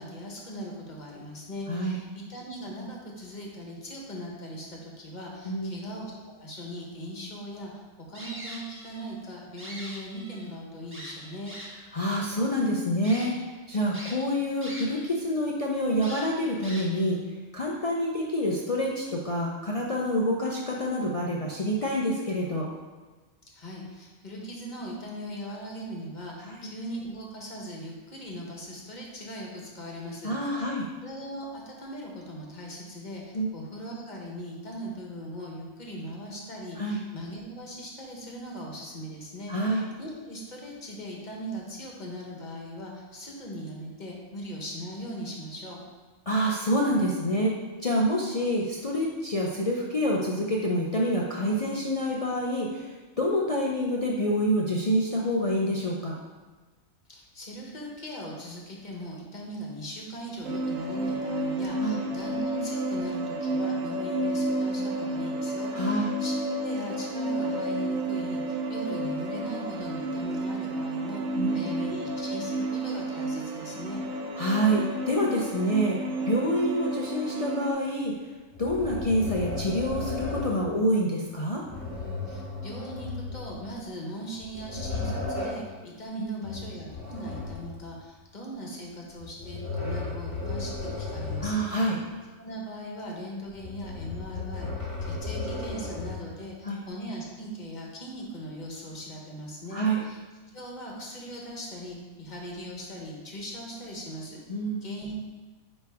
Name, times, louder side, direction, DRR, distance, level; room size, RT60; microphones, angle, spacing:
voice 1, 0.0-7.7 8.1-11.5 23.5-30.7 31.0-45.8 57.1-66.3 66.6-74.0 82.3-91.9 92.4-100.2 100.5-104.4 104.8-105.2, equal, 35° left, -2 dB, 1.2 m, -39 dB
sound 1, 8.1-9.1 9.4-10.5 10.9-11.9 12.5-12.6 13.0-13.3 13.9-15.1 15.4-15.5 16.0-17.1, equal, 10° right, 1.1 m, -42 dB
voice 2, 11.9-13.4 13.7-22.7 26.4-26.7 30.2-30.9 33.3-33.5 36.8-37.0 39.5-39.8 46.3-56.1 61.8-62.0 65.7-66.1 71.4-71.7 74.4-76.0 76.3-78.2 78.6-81.6 86.2-86.5 91.4-92.0 96.6-96.8 99.7-100.0 104.5-104.8, equal, 60° left, -3 dB, 0.3 m, -27 dB
sound 2, 60.4-77.7, right 2 dB, 75° right, 1.2 m, -31 dB
sound 3, 78.5-80.6 81.6-83.8 84.3-85.7 86.4-87.9 89.2-91.7 92.0-92.1 93.5-96.3, left 3 dB, 10° left, 1.7 m, -35 dB
9.2 x 3.2 x 3.5 m, 1.3 s
omnidirectional pair, 1.4 m